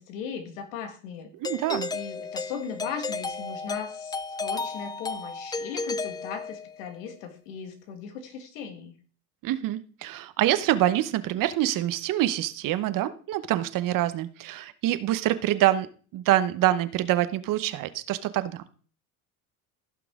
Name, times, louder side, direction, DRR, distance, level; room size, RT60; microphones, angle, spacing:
voice 1, 0.0-1.3 1.9-8.9, left 6 dB, 90° left, 7 dB, 1.7 m, -38 dB
Doorbell, 1.4-6.9, left 4 dB, 10° left, 0.3 m, -33 dB
voice 2, 1.4-1.9 9.4-15.9 16.1-18.6, right 13 dB, 60° right, 13 dB, 1.0 m, -25 dB
15.5 x 5.9 x 3.6 m, 0.41 s
supercardioid pair, 100°, 38 cm